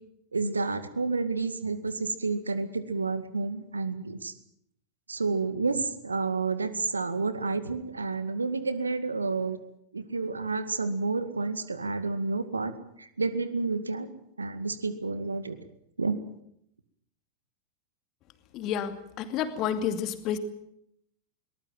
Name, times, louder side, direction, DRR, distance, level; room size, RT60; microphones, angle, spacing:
voice 1, 0.3-4.3 5.1-9.6 9.9-12.7 13.0-14.1 14.4-15.6 16.0-16.2, right 3 dB, 80° right, 12 dB, 2.1 m, -30 dB
voice 2, 18.5-20.4, left 9 dB, 35° left, 9 dB, 2.5 m, -30 dB
22.0 x 19.5 x 7.7 m, 0.72 s
figure-of-eight pair, 90°, 0 cm